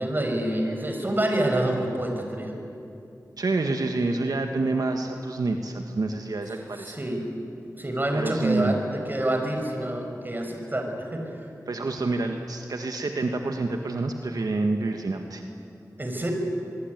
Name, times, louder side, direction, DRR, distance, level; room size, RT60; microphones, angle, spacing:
voice 1, 0.0-2.6 6.8-7.2 7.8-11.4 16.0-16.3, right 1 dB, 30° right, 3 dB, 5.4 m, -27 dB
voice 2, 3.4-6.9 8.1-8.8 11.7-15.4, right 3 dB, 80° right, 4 dB, 1.7 m, -27 dB
24.5 x 23.0 x 9.5 m, 2.6 s
wide cardioid pair, 65°, 6 cm